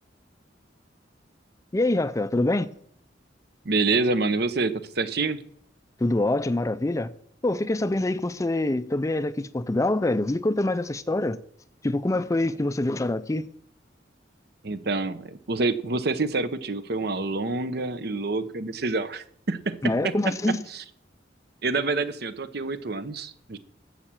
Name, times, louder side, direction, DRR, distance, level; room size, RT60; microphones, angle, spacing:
voice 1, 1.7-2.7 6.0-7.1 7.4-11.4 11.8-13.5 19.8-20.6, left 2 dB, 15° left, 0.4 m, -25 dB
voice 2, 3.6-5.4 14.6-20.1 20.5-20.8 21.6-23.6, right 3 dB, 60° right, 0.8 m, -27 dB
11.5 x 7.4 x 7.4 m
head